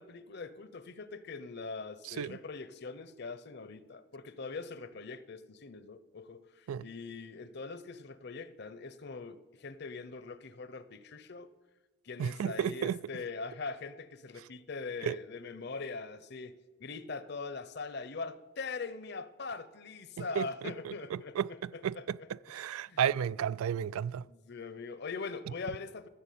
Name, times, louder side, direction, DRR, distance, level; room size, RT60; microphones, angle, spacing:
voice 1, 0.0-11.5 12.0-16.5 16.8-22.3 22.9-23.0 24.3-26.1, left 4 dB, 55° left, 0.7 m, -42 dB
voice 2, 2.0-2.4 6.7-6.8 12.2-13.0 14.4-14.5 15.0-15.2 20.2-24.3, right 8 dB, 90° right, 0.3 m, -33 dB
14.5 x 6.9 x 8.5 m
head